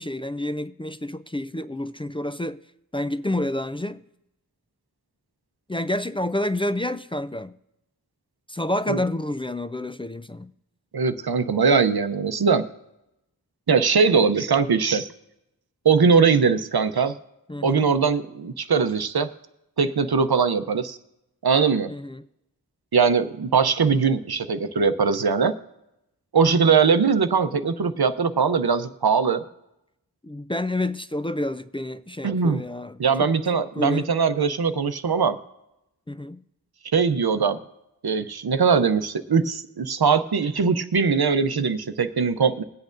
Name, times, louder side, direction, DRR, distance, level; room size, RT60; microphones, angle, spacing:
voice 1, 0.0-2.6 2.9-4.0 5.7-7.5 8.5-10.5 17.5-17.9 21.9-22.3 30.2-34.1 36.1-36.4, left 1 dB, 15° left, 0.3 m, -29 dB
voice 2, 10.9-12.7 13.7-15.1 15.8-17.2 17.6-19.3 19.8-21.0 21.4-21.9 22.9-25.5 26.3-29.4 32.2-32.6 33.0-35.4 36.9-37.6 38.0-42.6, right 5 dB, 70° right, 0.7 m, -21 dB
22.0 x 8.4 x 2.6 m
wide cardioid pair, 50°, 39 cm